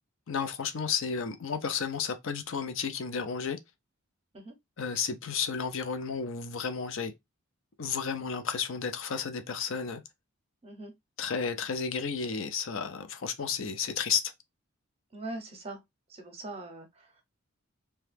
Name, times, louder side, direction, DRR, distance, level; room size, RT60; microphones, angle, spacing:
voice 1, 0.3-3.6 4.8-7.1 7.8-10.0 11.2-14.3, left 6 dB, 60° left, 0.5 m, -32 dB
voice 2, 10.6-10.9 15.1-15.8 16.1-17.2, right 2 dB, 25° right, 0.7 m, -42 dB
2.8 x 2.2 x 3.3 m
head